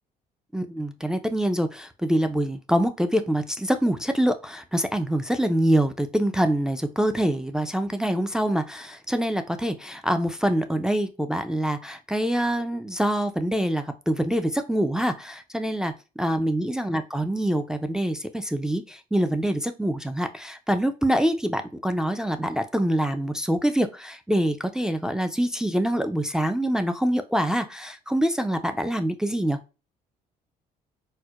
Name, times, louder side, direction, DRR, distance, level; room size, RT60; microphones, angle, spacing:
voice 1, 0.5-29.6, right 1 dB, 5° right, 7 dB, 0.3 m, -25 dB
4.4 x 2.0 x 2.3 m, 0.31 s
cardioid pair, 110°, 17 cm